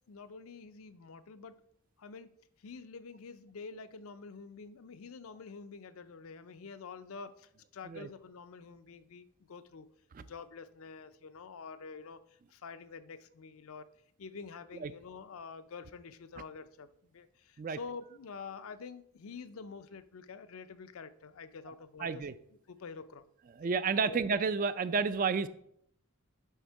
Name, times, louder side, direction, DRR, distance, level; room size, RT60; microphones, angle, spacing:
voice 1, 0.1-1.6 2.0-2.3 2.6-9.9 10.2-13.9 14.2-22.2 22.7-23.2 24.1-24.2, left 5 dB, 70° left, 12 dB, 0.5 m, -47 dB
voice 2, 22.0-22.3 23.6-25.5, right 5 dB, 40° right, 13 dB, 0.3 m, -31 dB
9.1 x 3.6 x 4.6 m, 0.71 s
head